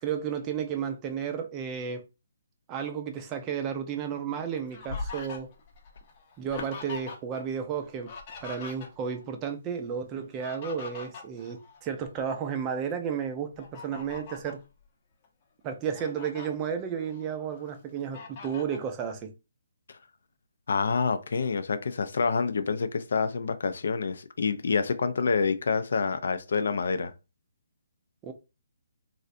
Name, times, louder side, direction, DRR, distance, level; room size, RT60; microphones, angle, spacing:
voice 1, 0.0-2.0 2.7-5.5 6.4-8.1 8.4-14.6 15.6-19.3 28.2-28.3, right 7 dB, 20° right, 0.4 m, -33 dB
Fowl, 4.1-7.4 7.7-9.2 10.2-12.3 12.7-12.9 13.6-14.6 15.2-15.3 15.7-16.5 17.0-17.7 18.1-18.9, left 4 dB, 35° left, 0.7 m, -42 dB
voice 2, 20.7-27.1, left 5 dB, 65° left, 0.4 m, -27 dB
3.2 x 2.5 x 2.5 m
hypercardioid pair, 160°, 0 cm